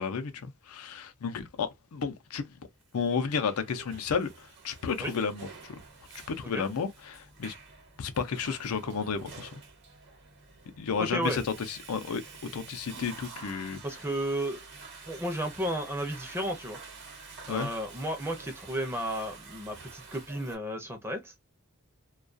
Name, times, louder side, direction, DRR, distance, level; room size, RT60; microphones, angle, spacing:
voice 1, 0.0-2.5 2.9-5.8 6.4-7.5 8.0-9.6 10.8-12.2 12.5-13.8 17.5-17.7, left 6 dB, 75° left, 0.5 m, -32 dB
Water / Toilet flush, 3.1-20.6, right 4 dB, 55° right, 0.9 m, -49 dB
voice 2, 11.0-11.4 13.8-14.7 15.1-16.8 17.5-21.3, right 1 dB, 10° right, 0.5 m, -33 dB
2.3 x 2.2 x 2.4 m
head